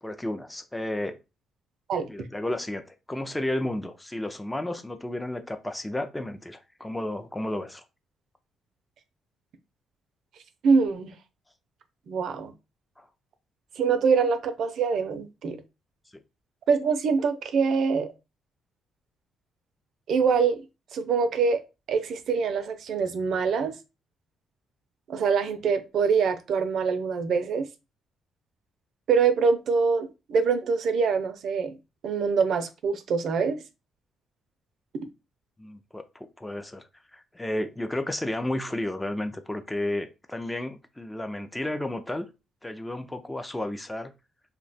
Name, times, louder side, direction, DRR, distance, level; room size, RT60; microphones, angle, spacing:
voice 1, 0.0-1.2 2.1-2.8 3.1-7.8 13.0-13.1 35.6-36.8 37.1-42.3 42.6-44.1, left 1 dB, 10° left, 0.4 m, -32 dB
voice 2, 10.6-11.1 12.1-12.5 13.8-15.6 16.7-18.1 20.1-20.6 20.9-21.6 21.9-23.7 25.1-27.7 29.1-31.7 32.0-33.6, right 5 dB, 70° right, 0.5 m, -24 dB
2.7 x 2.2 x 4.0 m
cardioid pair, 90°, 0 cm